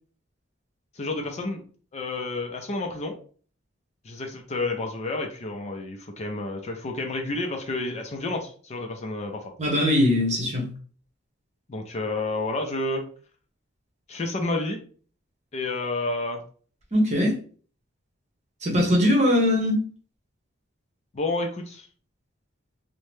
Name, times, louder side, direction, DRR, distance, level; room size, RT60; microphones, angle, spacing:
voice 1, 1.0-1.6 1.9-3.2 4.0-9.5 11.7-13.0 14.1-14.8 15.5-16.4 21.1-21.9, left 2 dB, 35° left, 3 dB, 0.4 m, -30 dB
voice 2, 9.6-10.7 16.9-17.4 18.6-19.8, left 1 dB, 35° right, -1 dB, 0.9 m, -21 dB
2.7 x 2.1 x 3.2 m, 0.43 s
head